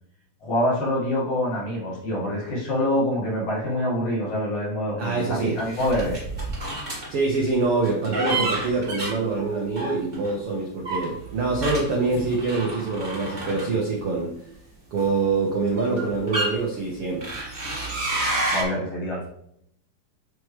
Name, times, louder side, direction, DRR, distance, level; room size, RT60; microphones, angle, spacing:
voice 1, 0.4-6.2 18.5-19.3, left 1 dB, 60° left, -5 dB, 3.3 m, -25 dB
voice 2, 5.0-5.6 7.1-14.3 14.9-17.3, right 3 dB, 80° right, -1 dB, 1.3 m, -25 dB
sound 1, 5.6-7.1 7.8-10.3 10.8-14.1 15.0-15.1 15.8-16.5 17.2-18.6, right 2 dB, 25° right, 0.9 m, -29 dB
7.7 x 4.7 x 3.3 m, 0.72 s
omnidirectional pair, 4.1 m